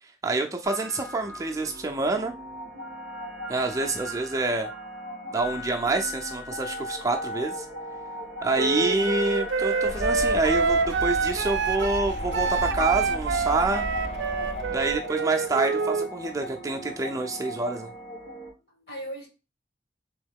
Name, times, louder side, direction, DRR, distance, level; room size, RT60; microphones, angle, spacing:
voice 1, 0.0-2.3 3.5-4.7 5.3-7.7 8.4-13.8 14.7-17.9, right 3 dB, 20° right, 3 dB, 0.4 m, -27 dB
sound 1, 0.6-18.5, left 1 dB, 85° left, 2.1 m, -37 dB
voice 2, 8.5-8.9 18.5-19.3, equal, 65° left, 1 dB, 1.6 m, -41 dB
Wind instrument woodwind instrument, 8.6-16.1, right 5 dB, 90° right, 0.4 m, -27 dB
sound 2, 9.8-15.0, equal, 35° left, 0.5 m, -35 dB
3.6 x 3.0 x 3.5 m, 0.30 s
head